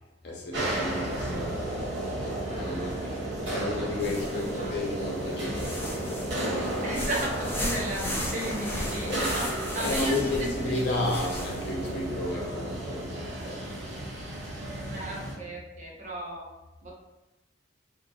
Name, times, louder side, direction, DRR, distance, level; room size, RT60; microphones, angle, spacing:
voice 1, 0.2-6.6 9.7-13.6, left 2 dB, 60° left, -2 dB, 0.6 m, -33 dB
sound 1, 0.5-15.3, right 1 dB, 65° right, 0.9 m, -33 dB
sound 2, 4.0-4.7 5.2-11.9, left 1 dB, 10° left, 0.4 m, -36 dB
voice 2, 4.3-4.7 6.8-11.0 14.9-16.5 16.8-16.9, right 1 dB, 40° right, -2 dB, 0.6 m, -35 dB
2.5 x 2.2 x 2.6 m, 1.0 s
head